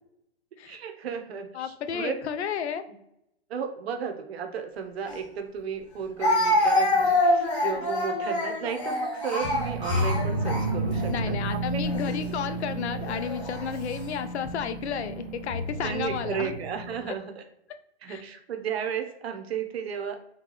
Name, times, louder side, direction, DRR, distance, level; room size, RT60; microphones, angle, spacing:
voice 1, 0.7-2.2 3.5-11.3 11.7-12.0 15.8-17.4 18.0-20.2, right 7 dB, 70° right, 6 dB, 0.7 m, -34 dB
voice 2, 1.5-2.8 11.1-16.6 17.1-17.2 18.1-18.2, left 7 dB, 80° left, 10 dB, 0.5 m, -32 dB
Speech, 5.1-5.2 6.2-11.1 11.9-12.1 13.1-13.6, left 1 dB, 30° left, 0.7 m, -26 dB
sound 1, 9.4-17.1, right 1 dB, 5° right, 0.4 m, -31 dB
3.8 x 2.3 x 3.0 m, 0.81 s
hypercardioid pair, 170°, 33 cm